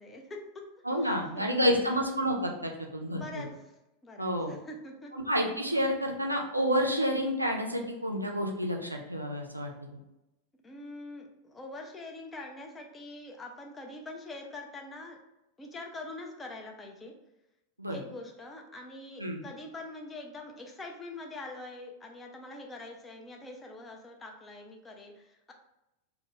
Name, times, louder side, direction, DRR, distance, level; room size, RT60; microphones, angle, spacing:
voice 1, 0.0-0.7 1.0-1.5 3.1-3.7 4.0-5.2 10.6-15.2 15.6-17.2 17.9-25.5, left 2 dB, 15° left, 2 dB, 0.4 m, -44 dB
voice 2, 0.9-3.2 4.2-4.5 5.3-10.0 17.8-18.0 19.2-19.4, equal, 85° right, 1 dB, 0.3 m, -29 dB
2.1 x 2.1 x 2.8 m, 0.92 s
figure-of-eight pair, 90°, 0 cm